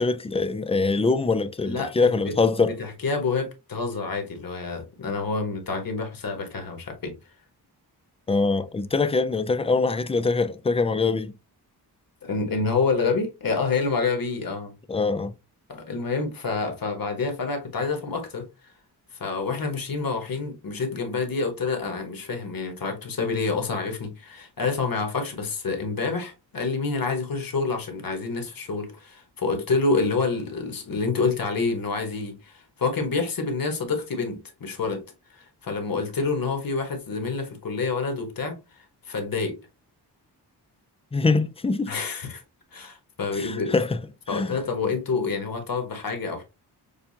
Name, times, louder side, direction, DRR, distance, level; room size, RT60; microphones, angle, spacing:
voice 1, 0.0-2.8 8.3-11.3 14.9-15.3 41.1-42.0 43.3-44.0 44.3-44.6, left 3 dB, 15° left, 0.3 m, -23 dB
voice 2, 1.6-2.3 2.6-7.1 12.2-14.7 15.7-18.5 19.2-35.0 35.3-39.6 41.9-42.4 42.7-43.7 44.3-46.4, left 4 dB, 55° left, 1.4 m, -28 dB
6.8 x 2.4 x 2.7 m
wide cardioid pair, 125°, 41 cm